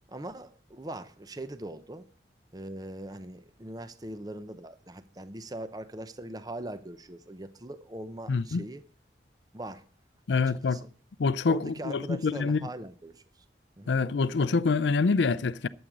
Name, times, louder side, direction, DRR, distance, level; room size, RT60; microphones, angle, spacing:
voice 1, 0.1-2.0 2.5-8.8 9.5-9.8 10.6-10.8 11.5-13.2 13.8-13.9, right 1 dB, 20° right, 0.8 m, -41 dB
voice 2, 8.3-8.6 10.3-10.8 11.2-12.6 13.9-15.7, left 4 dB, 85° left, 0.5 m, -26 dB
12.5 x 8.0 x 6.1 m
head